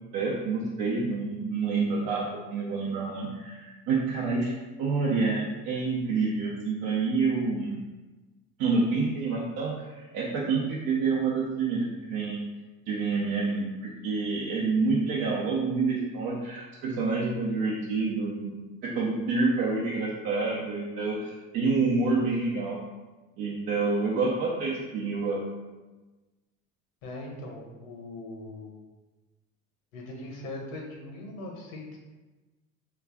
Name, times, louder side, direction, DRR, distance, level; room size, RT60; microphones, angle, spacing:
voice 1, 0.1-4.5 4.8-7.8 8.6-12.4 12.9-18.5 18.8-22.8 23.4-25.4, right 4 dB, 55° right, -4 dB, 0.7 m, -28 dB
voice 2, 27.0-28.7 29.9-32.0, left 2 dB, 75° left, 0 dB, 0.9 m, -40 dB
3.1 x 2.4 x 3.6 m, 1.2 s
hypercardioid pair, 75°, 41 cm